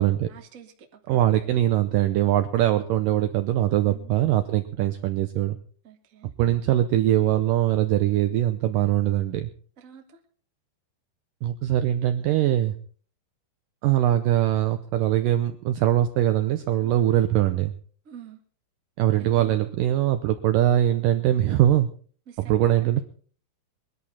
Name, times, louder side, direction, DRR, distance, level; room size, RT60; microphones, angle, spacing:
voice 1, 0.3-1.5 3.8-4.1 5.8-6.3 9.8-10.2 16.8-17.1 18.0-18.4 19.2-19.6 22.3-23.0, right 8 dB, 60° right, 4 dB, 0.8 m, -47 dB
voice 2, 1.1-5.6 6.4-9.5 11.4-12.8 13.8-17.7 19.0-21.9 22.4-23.0, right 12 dB, 80° right, 9 dB, 1.9 m, -22 dB
22.0 x 11.0 x 4.2 m, 0.43 s
omnidirectional pair, 4.8 m